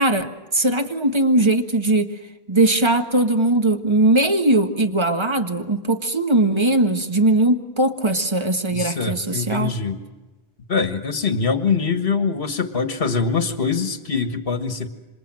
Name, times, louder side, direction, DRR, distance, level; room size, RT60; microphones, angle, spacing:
voice 1, 0.0-2.1 2.5-9.7, right 2 dB, 25° right, 6 dB, 1.6 m, -19 dB
voice 2, 8.7-10.0 10.7-14.9, left 5 dB, 65° left, 8 dB, 1.7 m, -23 dB
27.0 x 26.0 x 7.6 m, 1.2 s
omnidirectional pair, 1.0 m